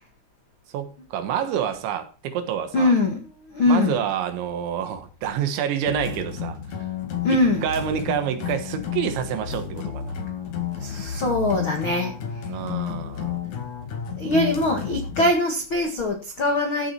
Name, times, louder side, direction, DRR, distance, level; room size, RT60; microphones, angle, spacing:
voice 1, 0.7-3.0 3.7-6.6 7.3-10.2 12.5-13.4, right 9 dB, 70° right, 3.5 m, -28 dB
voice 2, 2.7-3.2 3.5-3.9 7.2-7.6 10.8-12.1 14.2-16.9, left 2 dB, 90° left, 1.1 m, -22 dB
sound 1, 5.9-15.3, left 8 dB, 50° left, 2.5 m, -31 dB
15.0 x 7.3 x 4.3 m
omnidirectional pair, 5.7 m